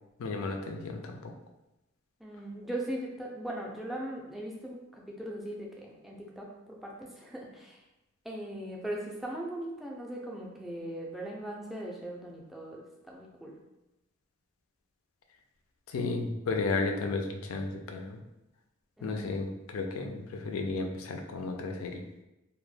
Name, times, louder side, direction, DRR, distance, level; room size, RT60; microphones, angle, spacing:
voice 1, 0.2-1.3 15.9-18.2 19.0-22.0, left 3 dB, 85° left, 4 dB, 0.4 m, -33 dB
voice 2, 2.2-7.8 8.2-12.8 13.1-13.5 19.0-19.4, right 1 dB, ahead, -2 dB, 0.3 m, -39 dB
2.1 x 2.1 x 3.1 m, 0.95 s
head